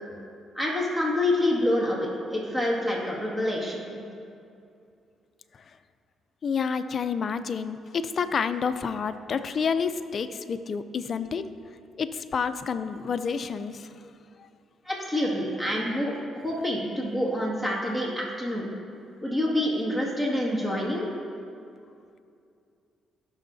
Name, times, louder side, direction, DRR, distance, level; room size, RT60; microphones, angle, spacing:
voice 1, 0.5-3.8 14.9-16.1 16.4-18.7 19.2-21.1, left 1 dB, 10° right, -4 dB, 2.0 m, -27 dB
voice 2, 6.4-11.5 12.0-13.9, left 6 dB, 50° left, 11 dB, 0.5 m, -29 dB
17.0 x 6.4 x 2.7 m, 2.5 s
cardioid pair, 90°, 0 cm